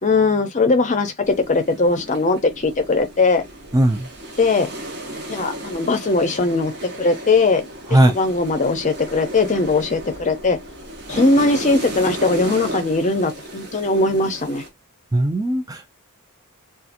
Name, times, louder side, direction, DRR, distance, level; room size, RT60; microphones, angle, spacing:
voice 1, 0.0-3.4 4.4-4.7 5.3-6.7 7.0-7.6 7.9-10.6 11.1-14.6, left 3 dB, 35° left, 0.6 m, -19 dB
sound 1, 1.2-14.7, right 1 dB, 50° right, 1.0 m, -34 dB
voice 2, 3.7-4.1 7.9-8.1 15.1-15.9, right 1 dB, 15° right, 0.4 m, -17 dB
2.8 x 2.4 x 2.5 m
head